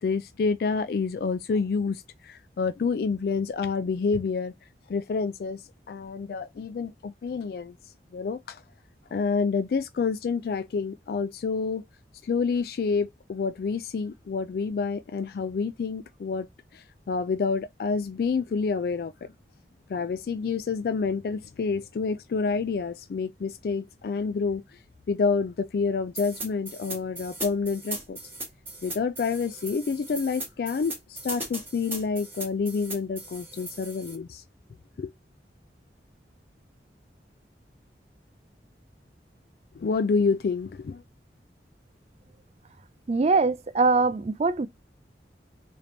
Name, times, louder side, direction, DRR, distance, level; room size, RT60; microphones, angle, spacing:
voice 1, 0.0-4.5 4.9-5.6 5.9-7.7 8.1-8.6 9.1-11.8 12.2-16.5 16.7-19.3 19.9-24.6 25.1-28.2 28.8-34.4 35.0-35.1 39.8-41.0, left 5 dB, 60° left, 0.3 m, -28 dB
sound 1, 26.2-34.2, right 2 dB, 10° right, 1.5 m, -38 dB
voice 2, 43.1-44.7, right 3 dB, 35° right, 0.4 m, -22 dB
3.4 x 2.9 x 3.8 m
head